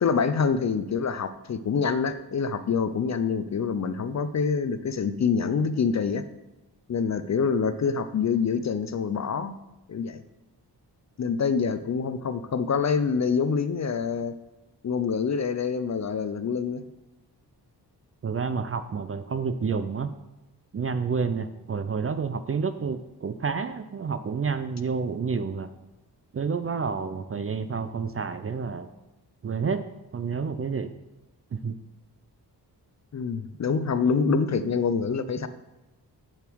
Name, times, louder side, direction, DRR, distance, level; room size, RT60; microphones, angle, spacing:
voice 1, 0.0-6.2 6.9-9.5 9.9-10.2 11.2-14.4 14.8-16.9 33.1-35.5, left 5 dB, 45° left, 12 dB, 0.4 m, -26 dB
voice 2, 18.2-20.1 20.7-25.7 26.3-28.9 29.4-29.8 30.1-30.9 31.5-31.7 34.1-34.4, right 5 dB, 35° right, 11 dB, 0.4 m, -29 dB
8.1 x 6.9 x 4.6 m, 0.98 s
wide cardioid pair, 160°, 41 cm